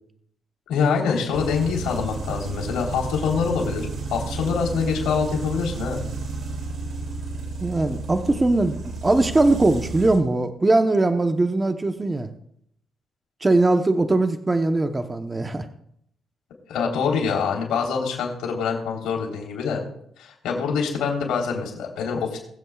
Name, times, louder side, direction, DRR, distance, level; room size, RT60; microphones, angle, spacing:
voice 1, 0.7-6.0 16.7-19.8 20.2-22.4, left 6 dB, 85° left, 0 dB, 3.5 m, -25 dB
sound 1, 1.3-10.2, right 3 dB, 55° right, 2.6 m, -32 dB
voice 2, 7.6-12.3 13.4-15.7, right 2 dB, 20° right, 7 dB, 0.9 m, -21 dB
22.0 x 7.8 x 2.4 m, 0.71 s
cardioid pair, 90°, 0 cm